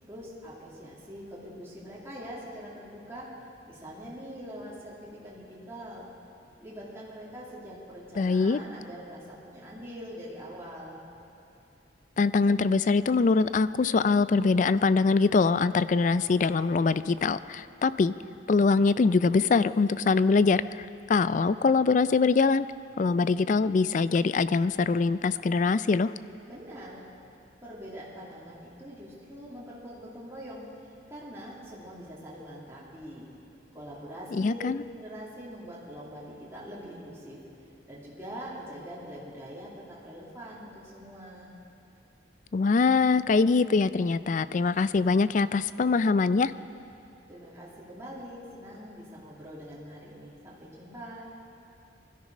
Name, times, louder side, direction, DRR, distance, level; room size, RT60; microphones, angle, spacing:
voice 1, 0.0-3.3 3.7-6.1 6.6-11.0 26.5-27.1 27.6-33.3 33.7-34.7 35.0-37.4 37.9-41.5 47.3-51.3, equal, 15° right, -7 dB, 2.7 m, -43 dB
voice 2, 8.2-8.6 12.2-18.1 18.5-22.7 23.0-26.1 34.3-34.8 42.5-46.5, left 4 dB, 40° left, 15 dB, 0.3 m, -23 dB
20.5 x 13.0 x 5.4 m, 2.6 s
head